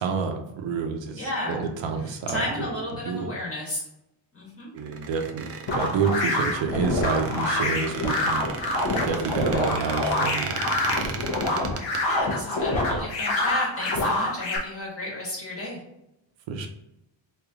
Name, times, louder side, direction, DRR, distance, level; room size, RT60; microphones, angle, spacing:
voice 1, 0.0-2.7 3.1-3.3 4.7-8.4 9.0-10.5 10.9-11.2 16.5-16.7, right 5 dB, 70° right, 4 dB, 0.7 m, -28 dB
voice 2, 1.2-1.6 2.0-3.8 4.3-4.7 9.4-9.9 12.0-15.8, left 1 dB, 30° left, -4 dB, 1.4 m, -33 dB
Squeak, 4.8-12.0, right 4 dB, 35° right, 0.4 m, -35 dB
sound 1, 5.7-14.6, left 2 dB, 65° left, 1.0 m, -26 dB
3.2 x 2.8 x 3.6 m, 0.86 s
cardioid pair, 150°, 47 cm